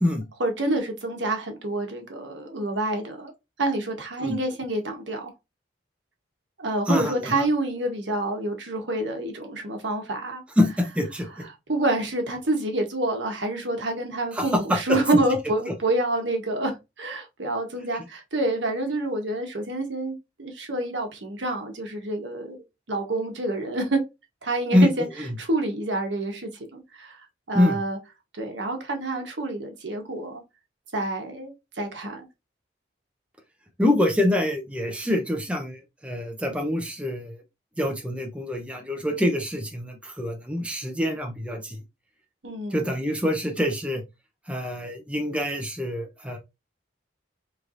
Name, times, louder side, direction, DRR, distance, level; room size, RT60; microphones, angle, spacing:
voice 1, 0.4-3.3 3.6-5.3 6.6-10.4 11.4-24.0 24.4-25.1 25.4-27.2 27.5-28.0 28.4-30.4 30.9-32.2 42.4-42.8, right 2 dB, 80° right, 1.1 m, -28 dB
voice 2, 6.9-7.4 10.6-11.3 14.3-14.8 24.7-24.9 27.5-27.8 33.8-37.4 37.8-41.8 42.7-44.0 44.5-46.4, left 1 dB, 5° right, 0.7 m, -25 dB
4.4 x 3.2 x 2.5 m
head